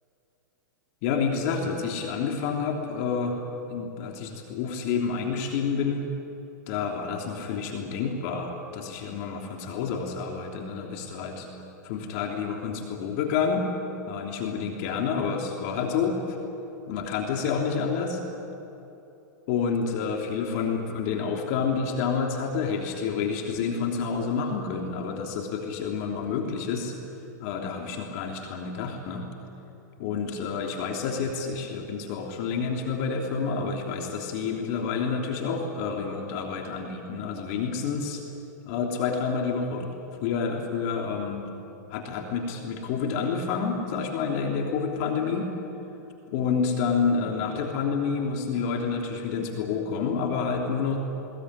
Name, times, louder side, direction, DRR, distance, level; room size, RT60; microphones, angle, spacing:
voice 1, 1.0-3.4 3.7-6.1 6.7-11.5 11.8-13.7 14.1-16.4 16.9-18.2 19.5-26.9 27.4-29.3 30.0-38.2 38.6-39.9 40.2-41.5 41.9-45.5 46.3-51.0, left 5 dB, 50° left, 2 dB, 3.2 m, -29 dB
21.0 x 20.0 x 9.8 m, 2.9 s
hypercardioid pair, 125°, 10 cm